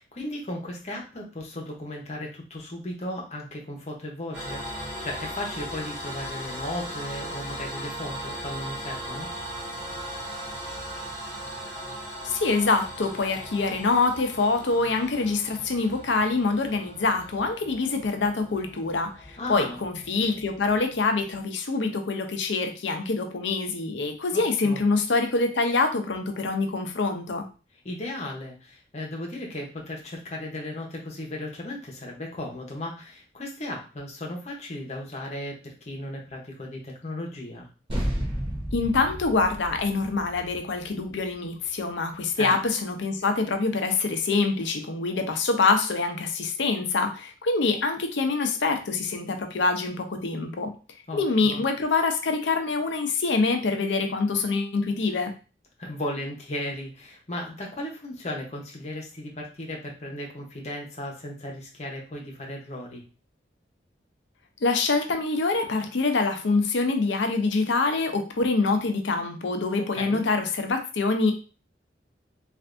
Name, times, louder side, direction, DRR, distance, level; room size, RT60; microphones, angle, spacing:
voice 1, 0.0-9.3 19.4-19.8 24.3-24.8 27.8-37.7 42.4-42.6 51.1-51.6 55.8-63.0 69.8-70.2, left 1 dB, 35° left, -1 dB, 0.8 m, -36 dB
sound 1, 4.3-21.4, right 1 dB, 5° right, 1.2 m, -38 dB
voice 2, 12.2-27.5 38.7-50.7 51.1-55.3 64.6-71.3, left 3 dB, 85° left, 5 dB, 0.6 m, -25 dB
sound 2, 37.9-42.7, equal, 30° right, 0.7 m, -33 dB
3.4 x 2.5 x 2.5 m, 0.34 s
head